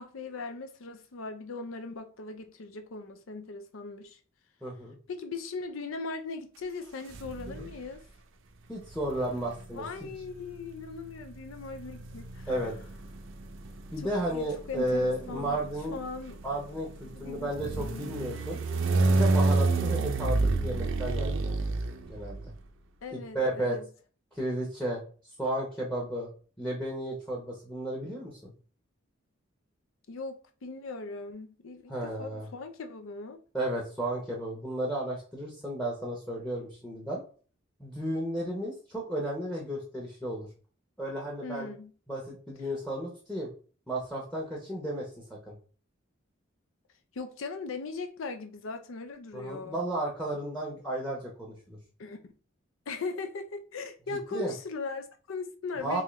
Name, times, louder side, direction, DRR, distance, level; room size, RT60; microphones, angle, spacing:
voice 1, 0.0-4.2 5.1-8.0 9.7-12.6 14.0-16.4 17.1-18.0 23.0-23.8 30.1-33.4 41.4-41.9 47.1-49.8 52.0-52.2 52.9-56.0, left 3 dB, 85° left, 0.5 m, -39 dB
voice 2, 4.6-5.0 7.5-7.7 8.7-10.1 12.5-12.7 13.9-16.0 16.4-18.6 19.0-21.6 22.1-22.5 23.1-23.8 24.3-25.0 25.4-26.3 26.6-28.5 31.9-32.5 33.5-37.2 37.8-40.5 41.0-41.7 42.1-43.5 43.9-45.1 45.5-45.6 49.3-51.8 54.1-54.5 55.8-56.0, right 1 dB, 5° left, 0.8 m, -33 dB
sound 1, 7.1-7.8 8.9-22.6, right 3 dB, 75° right, 0.5 m, -30 dB
3.7 x 3.0 x 3.1 m
head